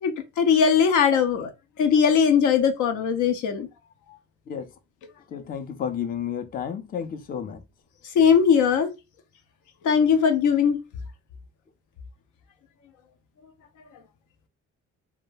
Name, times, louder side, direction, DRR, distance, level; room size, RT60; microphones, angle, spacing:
voice 1, 0.0-1.5 1.8-3.7 8.1-8.9 9.8-10.8, left 7 dB, 80° left, 0.6 m, -20 dB
voice 2, 5.3-7.6, left 8 dB, 30° left, 0.4 m, -31 dB
2.3 x 2.1 x 3.1 m
cardioid pair, 90°, 30 cm